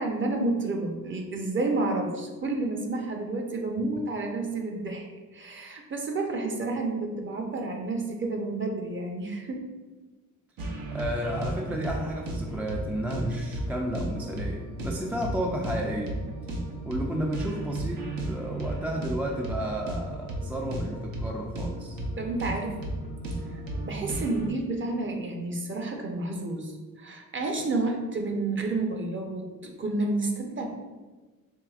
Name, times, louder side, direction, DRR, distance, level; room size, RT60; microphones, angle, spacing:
voice 1, 0.0-5.1 5.3-9.6 22.2-22.8 23.5-30.7, right 2 dB, 35° right, 2 dB, 0.7 m, -30 dB
sound 1, 10.6-24.5, right 1 dB, 85° right, 0.8 m, -34 dB
voice 2, 10.9-16.2 16.8-22.0, equal, 5° right, 0 dB, 0.3 m, -32 dB
4.6 x 3.4 x 2.4 m, 1.3 s
cardioid pair, 100°, 34 cm